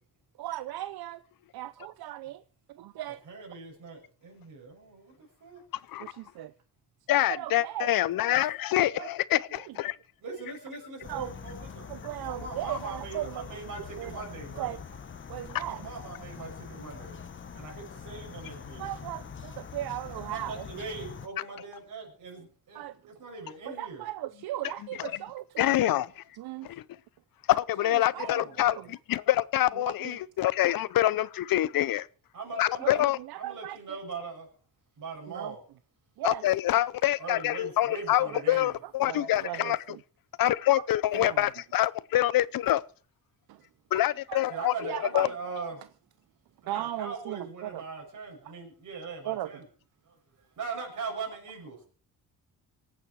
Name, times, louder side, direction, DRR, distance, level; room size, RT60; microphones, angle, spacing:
voice 1, 0.4-1.2 1.5-2.4 2.7-3.2 6.0-6.5 7.3-7.9 8.9-9.1 9.6-9.8 11.1-11.3 11.9-13.6 14.0-14.3 14.6-14.8 15.3-15.9 18.8-20.7 22.7-23.1 23.7-26.1 26.3-26.7 27.8-28.5 28.7-28.9 29.7-30.2 32.8-34.0 35.3-35.6 36.2-36.4 38.2-38.4 38.8-40.0 40.4-40.5 41.1-41.5 43.5-43.7 44.3-45.3 46.7-47.8 49.2-49.5, right 14 dB, 75° right, 0.7 m, -37 dB
voice 2, 3.3-5.6 8.3-8.4 10.2-11.9 12.3-14.7 15.5-17.2 17.5-18.8 20.3-24.0 28.2-28.7 32.3-33.0 33.4-34.5 35.0-35.6 37.2-38.7 44.5-45.8 46.6-49.6 50.0-51.9, right 4 dB, 55° right, 6.9 m, -41 dB
voice 3, 7.1-10.0 25.6-26.2 27.5-28.8 29.5-32.1 32.5-33.2 36.2-39.8 40.4-42.8 43.9-45.3, left 14 dB, 65° left, 0.6 m, -26 dB
sound 1, 11.0-21.3, left 6 dB, 30° left, 1.1 m, -44 dB
25.0 x 9.0 x 4.6 m
wide cardioid pair, 160°, 37 cm